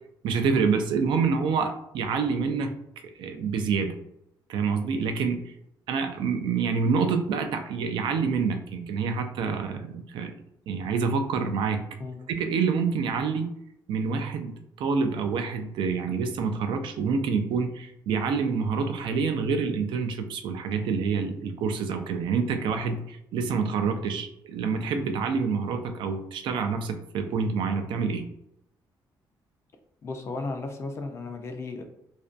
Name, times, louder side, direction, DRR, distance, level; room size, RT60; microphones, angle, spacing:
voice 1, 0.2-2.7 3.2-4.0 4.5-5.5 5.9-10.3 10.7-11.8 12.3-13.5 13.9-14.5 14.8-28.2, right 5 dB, 70° right, 6 dB, 0.3 m, -27 dB
voice 2, 30.0-31.8, left 3 dB, 30° left, 4 dB, 0.4 m, -34 dB
2.4 x 2.2 x 2.4 m, 0.77 s
cardioid pair, 155°, 8 cm